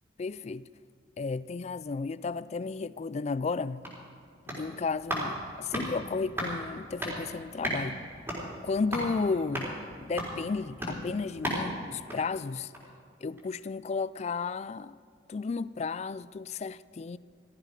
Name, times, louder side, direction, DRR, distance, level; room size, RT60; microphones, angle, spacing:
voice 1, 0.2-0.7 1.2-3.9 4.5-8.0 8.6-9.7 10.0-12.7 13.2-15.0 15.3-17.2, left 4 dB, 35° left, 0.3 m, -33 dB
sound 1, 3.8-13.0 13.4-13.5, equal, 10° right, 4.1 m, -37 dB
16.0 x 14.0 x 4.9 m
head